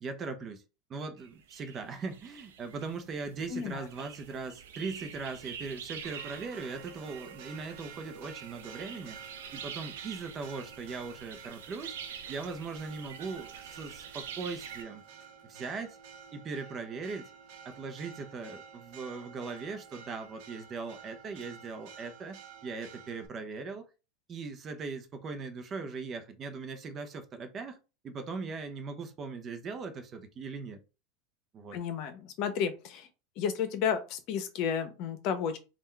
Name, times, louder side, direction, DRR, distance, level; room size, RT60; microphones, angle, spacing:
voice 1, 0.0-0.6 0.9-9.2 9.5-11.9 12.3-15.0 15.4-16.0 16.3-17.3 17.6-23.9 24.3-27.8 28.0-30.8 31.5-31.8, right 4 dB, 30° right, 0.8 m, -39 dB
sound 1, 1.2-14.8, right 8 dB, 85° right, 0.7 m, -46 dB
voice 2, 3.5-3.8 31.7-33.1 33.4-35.6, left 7 dB, 55° left, 0.8 m, -32 dB
Church bell, 6.0-23.3, right 7 dB, 65° right, 1.0 m, -51 dB
3.5 x 2.5 x 4.4 m
supercardioid pair, 125°, 0 cm